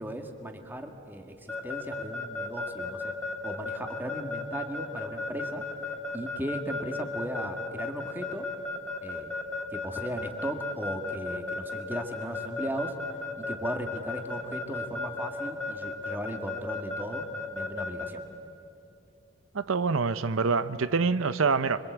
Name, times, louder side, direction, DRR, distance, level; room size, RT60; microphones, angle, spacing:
voice 1, 0.0-3.1 3.4-5.6 6.1-8.5 9.0-9.3 9.7-12.9 13.4-17.2 17.5-18.3, equal, 10° right, 4 dB, 1.8 m, -37 dB
Keyboard (musical) / Alarm, 1.5-18.1, left 3 dB, 5° left, 2.5 m, -34 dB
voice 2, 19.5-21.8, right 4 dB, 80° right, 13 dB, 0.7 m, -26 dB
26.0 x 24.5 x 8.1 m, 2.7 s
head